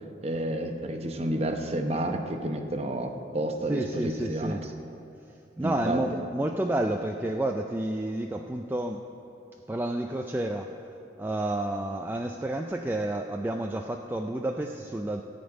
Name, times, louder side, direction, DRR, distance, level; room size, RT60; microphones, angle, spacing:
voice 1, 0.2-4.6 5.6-6.0, right 1 dB, 35° right, 4 dB, 0.8 m, -30 dB
voice 2, 3.7-4.6 5.6-9.0 9.7-10.8 11.2-15.2, right 1 dB, 10° right, 3 dB, 0.3 m, -30 dB
14.0 x 5.3 x 8.8 m, 2.7 s
head